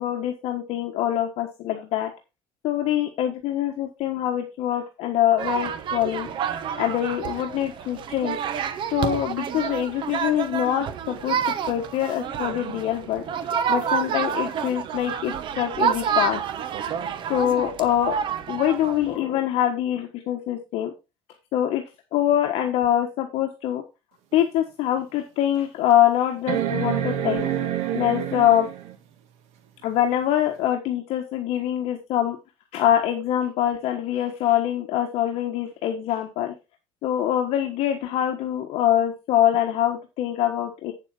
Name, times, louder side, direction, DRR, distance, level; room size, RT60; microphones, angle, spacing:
voice 1, 0.0-2.1 2.6-6.3 6.8-8.4 8.9-13.2 13.7-16.4 17.3-18.2 18.5-20.9 21.5-21.8 22.1-23.8 24.3-27.5 27.9-28.7 29.8-32.4 32.7-36.5 37.0-40.9, left 11 dB, 65° left, 4 dB, 1.4 m, -24 dB
sound 1, 5.4-19.2, right 8 dB, 45° right, 1.1 m, -29 dB
sound 2, 24.3-24.4 25.0-25.1 26.5-28.9 30.7-30.8, right 10 dB, 75° right, 1.9 m, -27 dB
8.5 x 7.5 x 4.4 m, 0.27 s
cardioid pair, 165°, 11 cm